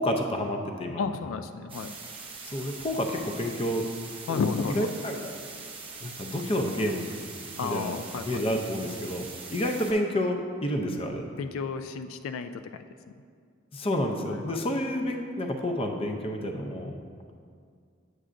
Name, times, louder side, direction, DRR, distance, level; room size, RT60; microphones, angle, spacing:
voice 1, 0.0-1.0 2.4-3.8 4.3-4.4 4.7-5.2 6.0-7.0 7.4-7.9 8.3-11.3 13.7-17.0, equal, 30° left, 4 dB, 0.5 m, -29 dB
voice 2, 1.0-1.9 4.3-4.9 7.6-8.4 11.4-12.8 14.3-14.6, left 5 dB, 85° left, 9 dB, 0.3 m, -32 dB
sound 1, 1.7-9.9, right 4 dB, 25° right, 0.8 m, -42 dB
7.9 x 7.6 x 2.5 m, 2.1 s
head